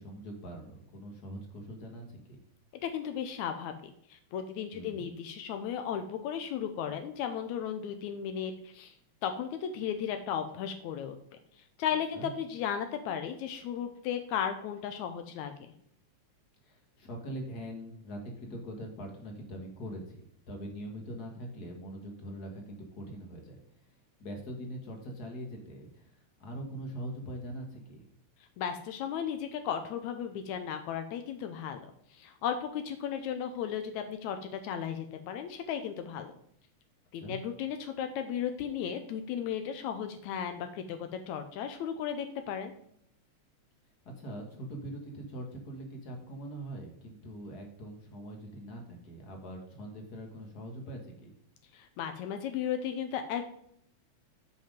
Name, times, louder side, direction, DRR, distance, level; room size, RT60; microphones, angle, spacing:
voice 1, 0.0-2.4 4.7-5.1 12.1-12.3 16.6-23.6 24.2-28.1 37.1-37.4 44.2-51.3, right 1 dB, 40° left, 2 dB, 1.5 m, -42 dB
voice 2, 2.8-8.9 9.2-11.2 11.8-15.7 28.6-36.3 37.1-42.7 51.7-53.6, left 8 dB, 80° left, 7 dB, 2.0 m, -35 dB
7.7 x 5.4 x 5.1 m, 0.70 s
omnidirectional pair, 3.3 m